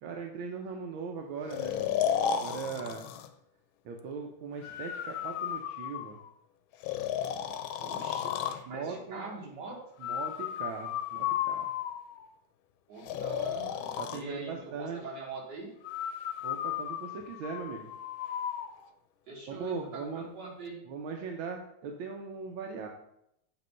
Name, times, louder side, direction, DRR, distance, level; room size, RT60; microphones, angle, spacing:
voice 1, 0.0-2.0 2.3-3.1 3.8-6.2 8.7-9.3 10.0-11.7 14.0-15.0 16.4-17.9 19.5-20.3 20.9-22.9, right 5 dB, 85° right, 2 dB, 1.5 m, -39 dB
Breathing, 1.5-3.3 4.6-6.3 6.8-8.6 10.0-12.3 13.0-14.2 15.8-18.7, left 9 dB, 85° left, 1.4 m, -34 dB
voice 2, 7.8-9.8 12.9-15.7 19.3-20.8, right 4 dB, 60° right, -2 dB, 2.1 m, -43 dB
7.3 x 3.0 x 5.5 m, 0.76 s
omnidirectional pair, 2.2 m